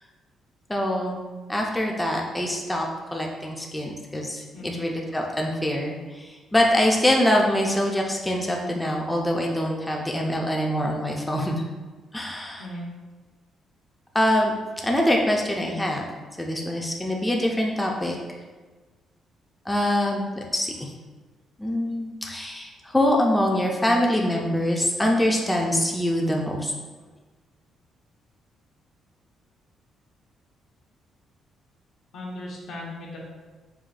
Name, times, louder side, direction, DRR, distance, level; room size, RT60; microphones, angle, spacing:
voice 1, 0.7-1.2 1.5-11.6 12.1-12.6 14.1-14.5 14.8-16.0 16.4-18.2 19.7-20.7 21.6-26.7, left 1 dB, 10° left, 0 dB, 0.4 m, -24 dB
voice 2, 32.1-33.2, left 1 dB, 70° left, -3 dB, 0.8 m, -36 dB
4.6 x 2.2 x 2.4 m, 1.3 s
cardioid pair, 90°, 0 cm